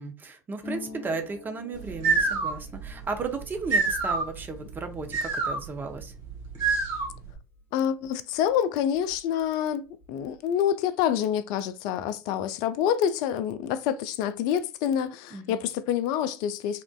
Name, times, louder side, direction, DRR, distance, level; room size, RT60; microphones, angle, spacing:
voice 1, 0.0-6.1 15.3-15.6, right 4 dB, 25° right, 0.7 m, -35 dB
Harp, 0.6-8.1 8.3-9.5 9.7-10.4, left 4 dB, 25° left, 1.0 m, -48 dB
sound 1, 1.7-7.3, right 4 dB, 50° right, 1.1 m, -28 dB
voice 2, 7.7-16.8, left 9 dB, 55° left, 0.4 m, -27 dB
3.5 x 2.4 x 2.2 m
figure-of-eight pair, 70°, 8 cm